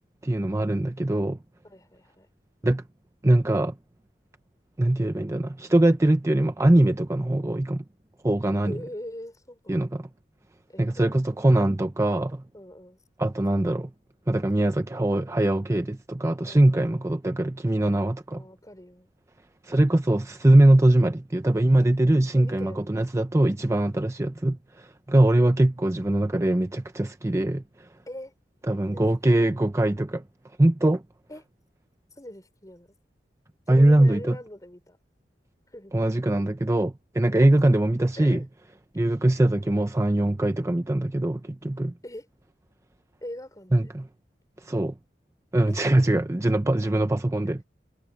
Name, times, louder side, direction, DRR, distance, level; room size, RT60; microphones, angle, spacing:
voice 1, 0.2-1.4 2.6-2.8 3.2-3.7 4.8-7.8 8.2-8.8 9.7-10.1 10.8-12.4 13.2-13.9 14.3-18.4 19.6-27.9 28.7-30.2 30.6-31.0 33.7-34.4 35.9-38.4 38.9-41.9 43.7-44.1 44.6-44.9 45.5-47.6, right 1 dB, 15° right, 0.5 m, -22 dB
voice 2, 1.6-2.3 8.6-9.8 10.7-11.5 12.5-13.0 16.4-17.1 18.3-19.1 22.3-22.8 28.1-28.3 28.7-29.7 31.3-31.4 32.1-32.9 33.7-35.0 35.7-35.9 38.2-38.5 42.0-42.3 43.2-43.9 45.7-45.8 46.8-47.2, left 1 dB, 20° left, 4.8 m, -42 dB
head